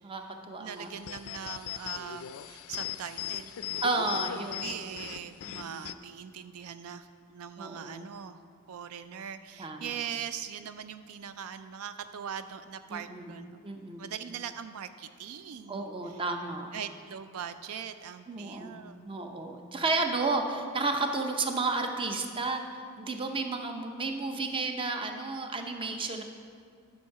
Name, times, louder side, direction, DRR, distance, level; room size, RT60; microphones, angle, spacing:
voice 1, 0.0-0.9 3.8-4.7 5.5-5.8 7.6-8.0 9.6-10.0 12.9-13.4 13.6-14.1 15.7-16.7 18.3-18.8 19.0-22.6 23.0-26.2, right 3 dB, 25° right, 4 dB, 0.6 m, -32 dB
voice 2, 0.6-8.4 8.7-13.6 14.0-16.2 16.7-19.1, right 8 dB, 80° right, 11 dB, 0.4 m, -41 dB
sound 1, 0.7-5.9, left 11 dB, 70° left, 0.3 m, -39 dB
11.5 x 6.4 x 4.7 m, 2.2 s
head